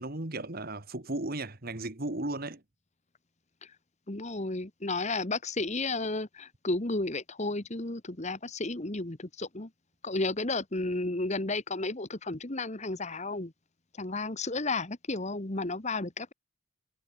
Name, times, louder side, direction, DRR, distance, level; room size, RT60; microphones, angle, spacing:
voice 1, 0.0-2.6, right 2 dB, 45° right, 2.0 m, -35 dB
voice 2, 4.1-9.7 10.0-13.5 14.0-16.3, left 2 dB, 35° left, 1.5 m, -33 dB
head